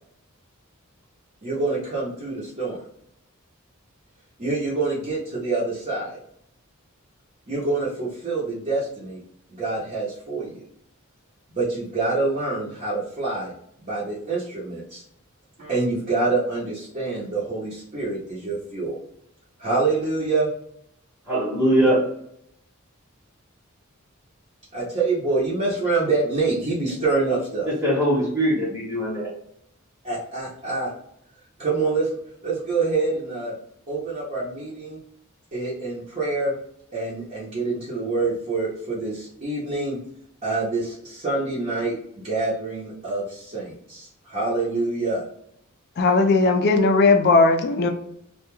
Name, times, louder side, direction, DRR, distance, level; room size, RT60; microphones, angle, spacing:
voice 1, 1.4-2.8 4.4-6.2 7.5-9.2 9.5-10.6 11.5-13.5 13.8-15.0 15.6-19.0 19.6-20.5 24.7-27.7 30.0-30.9 31.6-32.1 32.4-33.5 33.9-35.0 35.5-36.5 36.9-40.0 40.4-45.2, right 3 dB, 35° right, -8 dB, 0.8 m, -26 dB
voice 2, 21.3-22.1 27.6-29.3, equal, ahead, -7 dB, 0.9 m, -21 dB
voice 3, 46.0-47.9, left 3 dB, 50° left, 6 dB, 0.3 m, -17 dB
2.2 x 2.2 x 3.0 m, 0.71 s
head